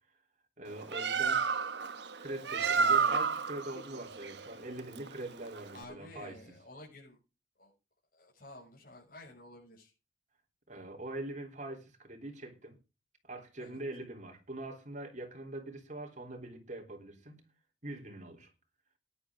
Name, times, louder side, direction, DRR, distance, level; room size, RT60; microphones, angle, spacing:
voice 1, 0.6-1.4 2.2-6.4 10.7-12.8 13.2-17.4 17.8-18.5, right 1 dB, 45° right, 3.6 m, -43 dB
Bird, 0.7-5.8, right 5 dB, 70° right, 1.1 m, -31 dB
voice 2, 5.7-7.2 7.6-7.7 8.1-9.9 13.6-13.8, left 2 dB, 50° left, 6.7 m, -52 dB
17.5 x 10.5 x 3.7 m
head